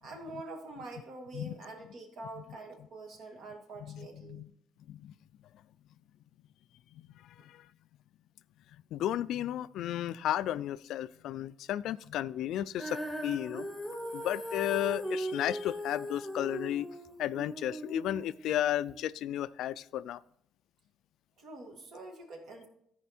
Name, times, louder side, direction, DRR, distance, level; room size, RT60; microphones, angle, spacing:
voice 1, 0.0-4.4 7.4-7.5 21.4-22.7, right 2 dB, 60° right, 2.1 m, -45 dB
voice 2, 3.8-4.5 4.9-5.1 6.9-7.7 8.9-13.7 14.1-16.9 17.2-20.2, left 12 dB, 75° left, 0.3 m, -34 dB
Female singing, 12.8-19.0, equal, ahead, 1.3 m, -39 dB
14.5 x 5.0 x 4.4 m
cardioid pair, 130°, 0 cm